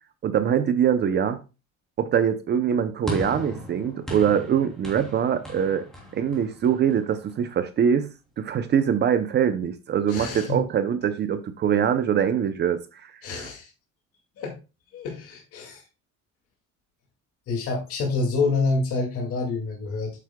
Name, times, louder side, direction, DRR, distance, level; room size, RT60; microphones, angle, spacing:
voice 1, 0.2-1.4 2.0-5.9 6.1-8.1 8.4-13.1 13.4-13.5, right 8 dB, 35° right, 0.6 m, -23 dB
sound 1, 3.1-7.5, left 1 dB, ahead, 2.8 m, -37 dB
voice 2, 10.1-10.6 13.2-13.7 14.4-14.5 14.9-15.8 17.5-20.1, left 3 dB, 50° left, 2.2 m, -27 dB
8.3 x 8.1 x 2.2 m
cardioid pair, 165°, 30 cm